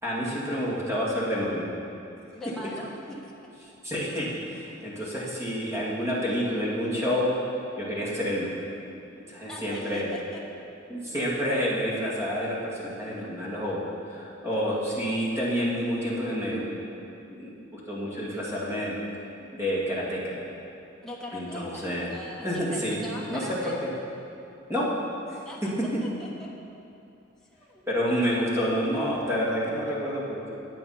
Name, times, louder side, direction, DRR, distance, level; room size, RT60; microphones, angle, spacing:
voice 1, 0.0-1.7 3.8-7.3 7.8-8.6 9.3-10.1 10.9-16.7 17.3-18.9 19.6-20.4 21.3-22.1 22.4-23.9 24.7-24.9 25.3-25.4 27.9-30.5, equal, 15° right, -7 dB, 2.2 m, -29 dB
voice 2, 2.3-3.0 3.2-3.3 9.5-10.4 21.0-23.8 25.4-25.6 26.0-26.5 27.4-27.8 28.1-28.4, left 1 dB, 5° left, -5 dB, 1.3 m, -41 dB
8.9 x 8.8 x 5.7 m, 2.7 s
head